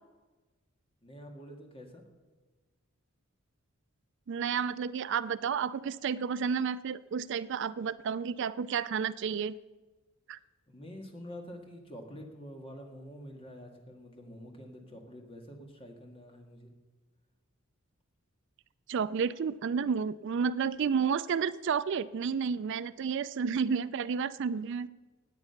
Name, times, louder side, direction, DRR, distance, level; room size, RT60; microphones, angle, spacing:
voice 1, 1.0-2.0 10.7-16.7, equal, 25° left, 2 dB, 2.0 m, -47 dB
voice 2, 4.3-9.5 10.3-10.4 18.9-24.9, right 6 dB, 55° right, 16 dB, 0.4 m, -31 dB
17.5 x 8.9 x 5.8 m, 1.3 s
head